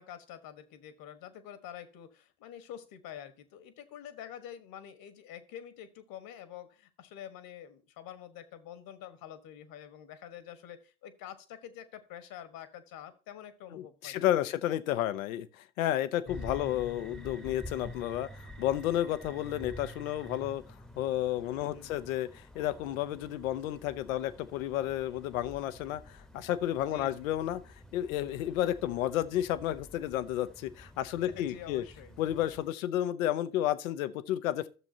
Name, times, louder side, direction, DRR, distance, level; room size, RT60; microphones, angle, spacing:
voice 1, 0.0-14.3 16.4-16.6 21.5-21.9 26.9-27.3 31.3-32.2, left 10 dB, 55° left, 1.5 m, -47 dB
voice 2, 13.7-20.6 21.0-27.6 27.9-31.8 32.2-34.7, left 12 dB, 75° left, 0.8 m, -32 dB
sound 1, 16.3-32.7, left 1 dB, ahead, 1.0 m, -49 dB
12.5 x 7.1 x 2.8 m
hypercardioid pair, 65°, 41 cm